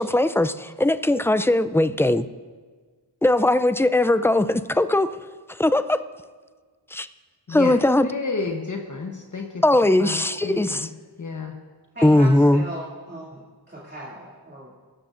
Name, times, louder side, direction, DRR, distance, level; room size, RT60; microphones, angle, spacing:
voice 1, 0.0-2.3 3.2-5.1 5.6-6.0 6.9-7.1 7.5-8.1 9.6-10.9 12.0-12.6, left 1 dB, 5° left, 12 dB, 0.3 m, -19 dB
voice 2, 8.0-9.6 10.0-10.2 10.4-10.9 11.2-11.5, left 4 dB, 45° left, 2 dB, 1.0 m, -30 dB
voice 3, 11.9-13.4 13.7-14.7, right 1 dB, 25° right, -6 dB, 2.5 m, -37 dB
22.0 x 13.0 x 2.5 m, 1.5 s
wide cardioid pair, 95°, 43 cm